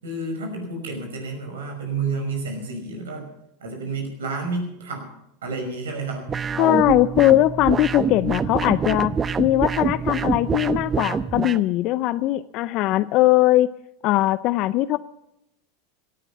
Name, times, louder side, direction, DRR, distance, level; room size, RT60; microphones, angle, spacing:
voice 1, 0.0-3.3 3.6-5.1 5.4-6.2, right 3 dB, 80° right, 3 dB, 5.7 m, -30 dB
sound 1, 6.3-11.6, right 6 dB, 25° right, 0.8 m, -25 dB
voice 2, 6.6-9.1 9.4-13.7 14.0-15.0, left 16 dB, 50° left, 15 dB, 0.5 m, -20 dB
17.5 x 10.0 x 7.3 m, 0.87 s
hypercardioid pair, 95°, 0 cm